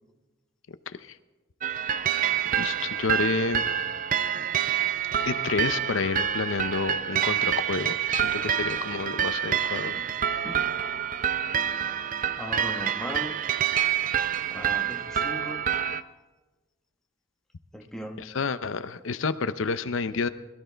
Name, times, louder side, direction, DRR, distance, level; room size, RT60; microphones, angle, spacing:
voice 1, 0.9-1.2 2.5-3.7 5.3-10.0 18.2-20.3, left 4 dB, 90° left, 12 dB, 0.6 m, -29 dB
sound 1, 1.6-16.0, right 9 dB, 45° right, 0.5 m, -27 dB
voice 2, 11.7-13.4 14.5-15.7 17.7-18.3, equal, 5° left, 2 dB, 1.1 m, -39 dB
21.5 x 14.0 x 3.4 m, 1.2 s
head